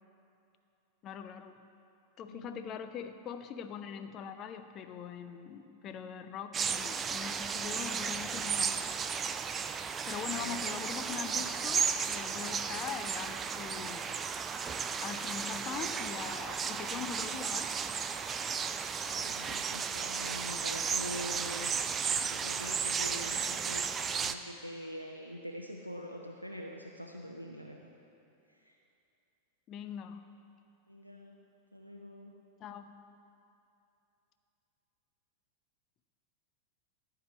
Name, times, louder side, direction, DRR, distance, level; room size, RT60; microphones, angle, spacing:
voice 1, 1.0-1.6 2.2-8.9 10.1-14.2 15.0-17.7 29.7-30.2 32.6-32.9, left 8 dB, 35° left, 9 dB, 0.5 m, -42 dB
voice 2, 2.2-2.7 10.1-10.6 19.0-21.8 22.2-23.9 24.2-27.9 28.5-28.7 30.9-31.4 31.7-32.3, equal, 90° right, 0 dB, 0.6 m, -44 dB
sound 1, 6.5-24.3, right 6 dB, 20° right, 0.4 m, -34 dB
13.5 x 4.8 x 6.9 m, 2.7 s
figure-of-eight pair, 90°, 0 cm